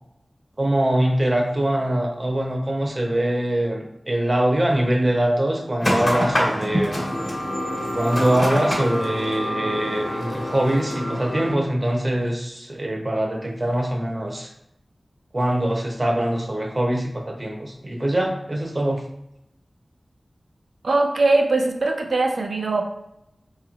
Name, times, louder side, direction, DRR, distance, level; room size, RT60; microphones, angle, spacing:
voice 1, 0.6-7.1 7.9-14.5 15.3-19.0, right 1 dB, 35° right, 1 dB, 0.7 m, -23 dB
sound 1, 5.8-11.5, equal, 50° left, 1.3 m, -25 dB
voice 2, 20.8-22.8, right 2 dB, 80° right, 3 dB, 0.5 m, -20 dB
4.7 x 3.0 x 2.4 m, 0.81 s
wide cardioid pair, 80°, 0 cm